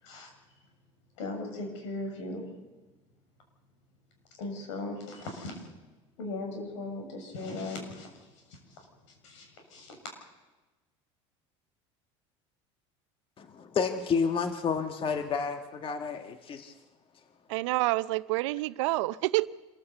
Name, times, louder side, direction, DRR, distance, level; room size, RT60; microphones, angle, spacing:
voice 1, 1.2-2.4 4.4-5.6 6.2-8.1 8.5-8.8 9.2-10.0, left 2 dB, 80° left, 3 dB, 6.9 m, -38 dB
voice 2, 13.4-16.7, left 5 dB, 35° left, 7 dB, 1.5 m, -30 dB
voice 3, 17.5-19.5, right 20 dB, 75° right, 15 dB, 0.7 m, -28 dB
26.5 x 14.5 x 8.2 m, 1.2 s
supercardioid pair, 95°, 16 cm